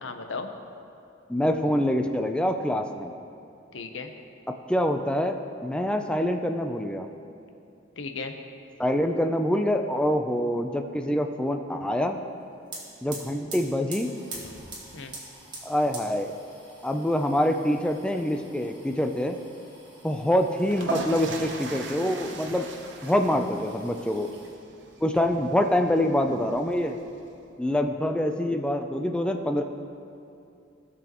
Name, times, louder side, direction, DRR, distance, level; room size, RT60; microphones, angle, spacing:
voice 1, 0.0-0.5 3.7-4.1 8.0-8.3 14.9-15.1, left 4 dB, 80° left, 6 dB, 0.8 m, -35 dB
voice 2, 1.3-3.1 4.7-7.1 8.8-12.2 13.0-14.1 15.6-16.4 16.8-19.4 20.0-22.7 23.0-24.3 25.0-27.0 27.6-29.6, left 1 dB, 5° left, 5 dB, 0.4 m, -25 dB
sound 1, 12.3-12.4 12.6-24.6 25.0-25.8 26.0-27.0, right 2 dB, 25° right, 1.8 m, -46 dB
sound 2, 20.5-27.3, right 3 dB, 65° right, 0.8 m, -38 dB
17.5 x 6.2 x 3.0 m, 2.6 s
head